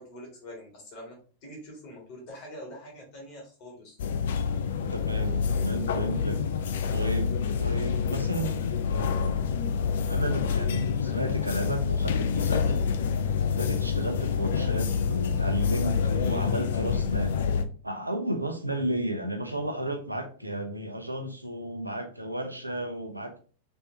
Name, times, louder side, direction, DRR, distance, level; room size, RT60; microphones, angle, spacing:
voice 1, 0.0-4.0, equal, 45° left, -1 dB, 2.2 m, -45 dB
sound 1, 4.0-17.6, left 6 dB, 60° left, 0.4 m, -27 dB
voice 2, 4.9-6.4 6.9-7.3 7.6-8.6 8.9-9.4 10.1-12.8 13.5-17.4 17.8-23.3, right 1 dB, 85° right, 5 dB, 0.7 m, -33 dB
4.3 x 3.4 x 2.8 m, 0.40 s
figure-of-eight pair, 90°, 0 cm